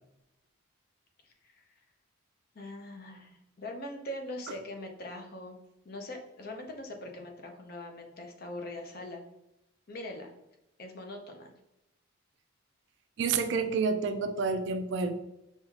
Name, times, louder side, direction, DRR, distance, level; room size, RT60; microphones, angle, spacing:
voice 1, 1.2-1.6 2.5-5.6 5.8-9.2 9.9-10.3 10.8-11.5, left 1 dB, 45° left, 3 dB, 0.6 m, -42 dB
voice 2, 13.2-15.1, right 4 dB, 55° right, 8 dB, 0.3 m, -29 dB
5.4 x 2.4 x 2.8 m, 0.91 s
head